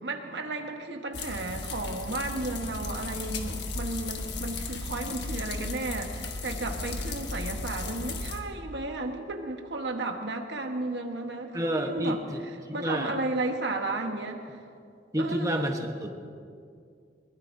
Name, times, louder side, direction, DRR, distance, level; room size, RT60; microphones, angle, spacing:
voice 1, 0.0-12.2 12.7-14.6 15.2-15.7, right 2 dB, 75° right, 4 dB, 1.3 m, -33 dB
sound 1, 1.1-8.4, left 3 dB, 70° left, 1.4 m, -35 dB
voice 2, 11.5-12.4 12.7-13.1 15.1-16.1, equal, 20° right, 2 dB, 1.1 m, -29 dB
22.0 x 20.0 x 2.7 m, 2.3 s
head